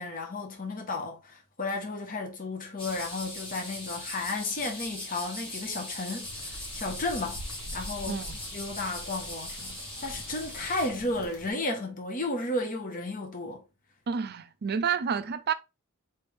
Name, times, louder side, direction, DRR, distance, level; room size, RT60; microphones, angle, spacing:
voice 1, 0.0-7.4 7.7-8.2 8.5-13.6, left 2 dB, 40° left, 1.1 m, -33 dB
sound 1, 2.8-10.9, left 1 dB, 25° left, 1.3 m, -40 dB
sound 2, 6.2-11.5, equal, 80° left, 1.2 m, -45 dB
voice 2, 8.1-8.4 14.1-15.5, right 6 dB, 50° right, 0.5 m, -29 dB
4.4 x 3.4 x 3.4 m
head